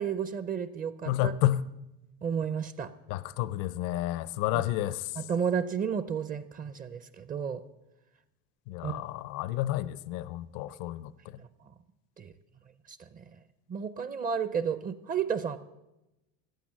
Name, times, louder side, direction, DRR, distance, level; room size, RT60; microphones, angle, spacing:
voice 1, 0.0-1.3 2.2-2.9 4.5-4.6 5.2-7.6 8.8-9.0 11.4-11.7 12.2-12.3 12.9-13.4 13.7-15.6, right 7 dB, 25° right, 14 dB, 0.5 m, -32 dB
voice 2, 1.1-1.6 3.1-5.1 8.7-11.1, left 14 dB, 75° left, 17 dB, 0.7 m, -30 dB
14.5 x 8.9 x 7.4 m, 0.95 s
cardioid pair, 130°, 33 cm